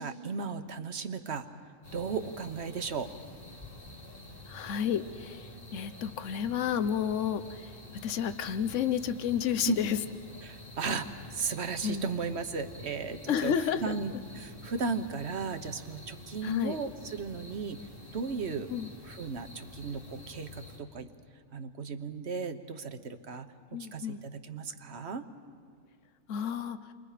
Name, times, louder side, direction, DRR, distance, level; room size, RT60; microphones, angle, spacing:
voice 1, 0.0-1.4 1.9-3.1 9.6-9.8 10.4-17.8 18.1-18.7 19.0-21.1 21.5-25.2, right 5 dB, 60° right, 8 dB, 1.3 m, -35 dB
sound 1, 1.8-20.8, left 2 dB, 45° left, 3.0 m, -48 dB
voice 2, 4.5-5.4 5.7-7.4 8.0-10.0 11.8-12.1 13.3-14.2 16.4-16.8 18.7-18.9 23.7-24.2 26.3-26.8, left 8 dB, 70° left, 11 dB, 1.2 m, -31 dB
29.5 x 24.0 x 5.0 m, 2.1 s
omnidirectional pair, 1.3 m